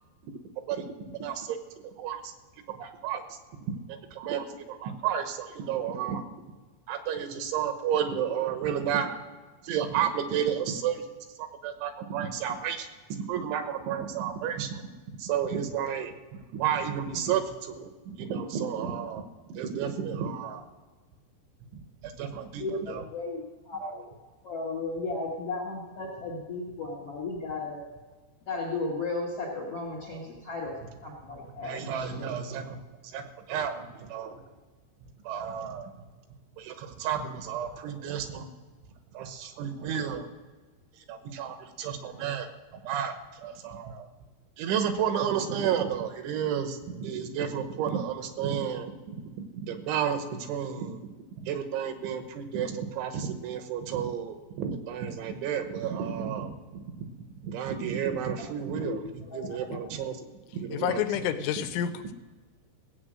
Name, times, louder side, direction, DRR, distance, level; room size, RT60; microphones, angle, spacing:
voice 1, 1.1-1.6 1.8-2.2 2.7-3.2 3.9-6.3 6.9-9.1 9.6-11.0 11.4-12.9 13.3-14.9 15.2-16.1 16.5-19.3 19.5-20.6 21.7-23.0 23.8-24.0 31.6-32.8 33.1-33.2 33.5-34.4 35.3-36.0 36.6-38.5 39.1-40.3 41.1-42.5 42.8-43.1 43.4-44.1 44.6-51.0 51.5-57.0 57.4-59.0 59.3-60.2 60.5-61.1 62.0-62.1, right 8 dB, 75° right, 7 dB, 3.3 m, -32 dB
voice 2, 22.6-24.1 24.4-27.8 28.5-30.7 31.0-32.4 58.7-59.8, left 3 dB, 60° left, -1 dB, 1.6 m, -35 dB
voice 3, 60.7-62.1, left 10 dB, 85° left, 8 dB, 3.2 m, -29 dB
16.5 x 8.5 x 6.2 m, 1.3 s
omnidirectional pair, 5.5 m